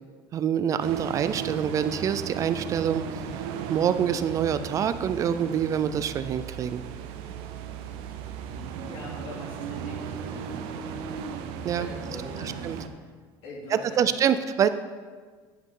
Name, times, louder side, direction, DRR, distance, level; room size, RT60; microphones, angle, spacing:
voice 1, 0.3-3.2 3.7-6.8 11.6-11.9 12.4-12.8 13.7-14.7, right 8 dB, 35° right, 12 dB, 0.4 m, -26 dB
sound 1, 0.8-12.9, right 7 dB, 80° right, 0.7 m, -36 dB
voice 2, 8.8-10.9 11.7-12.6 13.4-14.1, left 1 dB, 75° left, -4 dB, 3.1 m, -42 dB
11.0 x 7.7 x 3.7 m, 1.5 s
cardioid pair, 155°, 10 cm